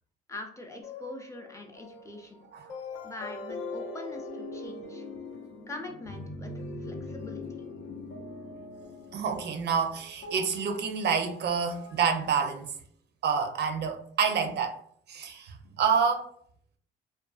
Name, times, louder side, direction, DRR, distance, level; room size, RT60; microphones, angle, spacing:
voice 1, 0.3-2.4 3.0-5.0 5.7-6.5 6.8-7.5, left 2 dB, 15° left, 0.4 m, -43 dB
sound 1, 0.8-12.1, left 2 dB, 85° left, 0.6 m, -42 dB
voice 2, 9.1-12.7 13.2-14.8 15.1-16.3, right 6 dB, 60° right, 0.4 m, -28 dB
2.4 x 2.3 x 2.3 m
cardioid pair, 90°, 20 cm